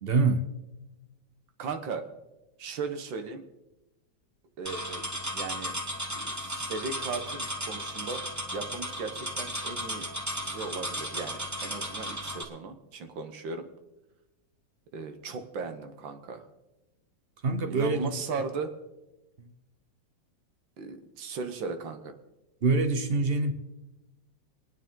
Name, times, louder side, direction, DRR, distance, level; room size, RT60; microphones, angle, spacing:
voice 1, 0.0-0.4 17.4-18.1 22.6-23.5, right 3 dB, 50° right, 0.7 m, -25 dB
voice 2, 1.6-2.1 2.6-3.4 4.6-5.0 5.3-5.8 6.1-8.2 8.5-10.1 10.4-13.7 14.9-16.5 17.7-18.7 20.8-22.1, right 4 dB, 80° right, 1.9 m, -37 dB
sound 1, 4.6-12.4, equal, 10° right, 1.0 m, -35 dB
23.0 x 9.6 x 3.8 m
omnidirectional pair, 2.0 m